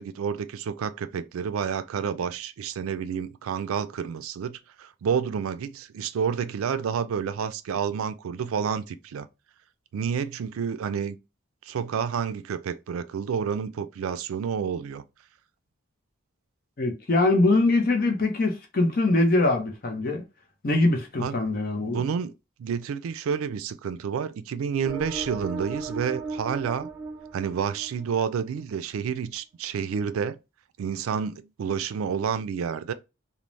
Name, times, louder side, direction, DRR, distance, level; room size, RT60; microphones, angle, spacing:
voice 1, 0.0-9.3 9.9-11.2 11.6-15.0 21.2-21.3 21.8-22.3 22.6-26.9 27.3-30.4 30.8-32.9, right 7 dB, 85° right, 0.3 m, -29 dB
voice 2, 16.8-20.2 20.6-22.0, left 2 dB, 45° left, 0.6 m, -23 dB
sound 1, 24.8-28.4, right 4 dB, 10° right, 0.4 m, -36 dB
3.1 x 2.0 x 2.5 m
head